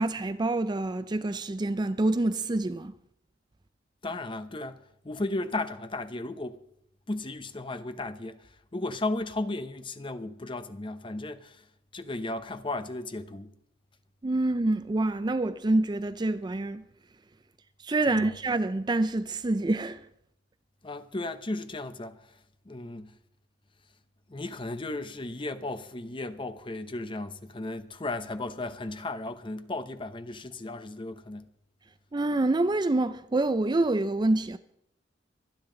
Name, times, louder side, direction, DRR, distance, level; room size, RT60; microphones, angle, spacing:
voice 1, 0.0-2.9 14.2-16.8 17.8-20.1 32.1-34.6, right 2 dB, 25° right, 0.4 m, -26 dB
voice 2, 4.0-6.6 7.1-11.6 11.9-13.5 18.1-18.3 20.8-22.4 22.7-23.1 24.3-31.5, left 2 dB, 25° left, 0.8 m, -35 dB
24.5 x 9.6 x 3.8 m
head